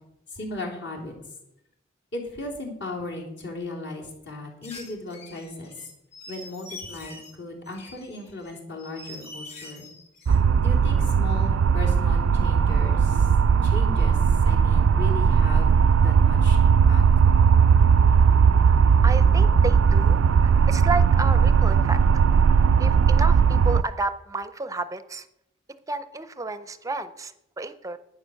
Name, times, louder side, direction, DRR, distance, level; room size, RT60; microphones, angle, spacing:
voice 1, 0.3-1.1 2.1-5.7 6.3-9.9 10.6-13.3 13.6-17.0, left 2 dB, 65° left, -1 dB, 3.4 m, -37 dB
sound 1, 4.6-7.3 7.7-10.4, left 2 dB, 35° left, 3.4 m, -44 dB
sound 2, 10.3-23.8, right 6 dB, 80° right, 0.3 m, -18 dB
voice 2, 19.0-22.0 22.5-25.3 25.9-28.0, right 2 dB, 15° right, 12 dB, 0.5 m, -32 dB
11.0 x 9.5 x 6.4 m, 0.83 s
head